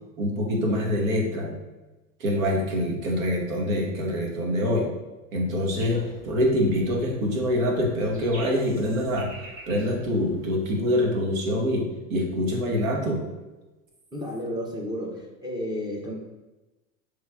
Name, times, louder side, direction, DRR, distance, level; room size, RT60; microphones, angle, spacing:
voice 1, 0.2-1.5 2.2-4.9 5.3-9.3 9.7-13.2, left 1 dB, 80° right, 0 dB, 1.2 m, -25 dB
sound 1, 5.7-10.7, right 1 dB, 35° right, 1.3 m, -47 dB
voice 2, 14.1-16.1, equal, 10° right, -2 dB, 0.6 m, -32 dB
5.6 x 3.2 x 2.3 m, 1.1 s
supercardioid pair, 120°, 40 cm